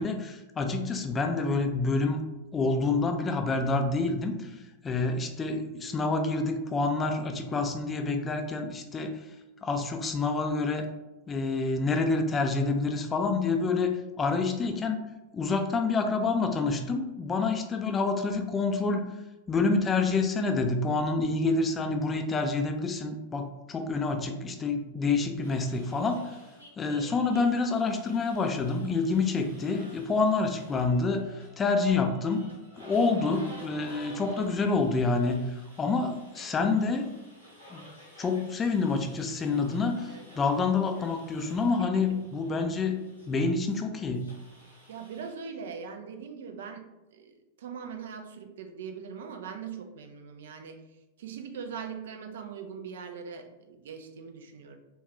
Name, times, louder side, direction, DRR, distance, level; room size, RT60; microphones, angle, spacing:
voice 1, 0.0-2.2 2.5-9.3 9.6-10.9 11.3-15.0 15.3-19.1 19.5-26.4 26.8-32.4 32.8-37.1 37.7-37.9 38.2-43.0 43.3-44.4, left 3 dB, 20° left, 5 dB, 0.3 m, -28 dB
sound 1, 25.4-45.3, left 1 dB, 80° right, 0.9 m, -52 dB
voice 2, 44.6-46.9 47.1-54.8, right 6 dB, 60° right, 6 dB, 0.3 m, -41 dB
3.6 x 2.2 x 2.8 m, 1.1 s
figure-of-eight pair, 90°, 0 cm